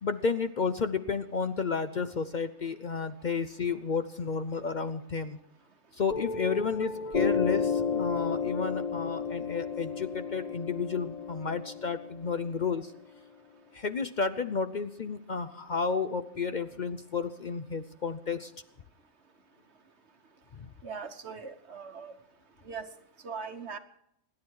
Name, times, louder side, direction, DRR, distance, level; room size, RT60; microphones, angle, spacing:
voice 1, 0.0-5.4 5.9-12.9 13.7-18.5 20.5-20.7, left 5 dB, 50° left, 11 dB, 0.5 m, -32 dB
Piano, 6.1-13.2, left 5 dB, 35° left, 1.2 m, -32 dB
voice 2, 20.8-22.1 22.7-22.9 23.2-23.8, right 5 dB, 50° right, 8 dB, 1.3 m, -40 dB
26.0 x 11.0 x 4.7 m, 0.75 s
omnidirectional pair, 1.5 m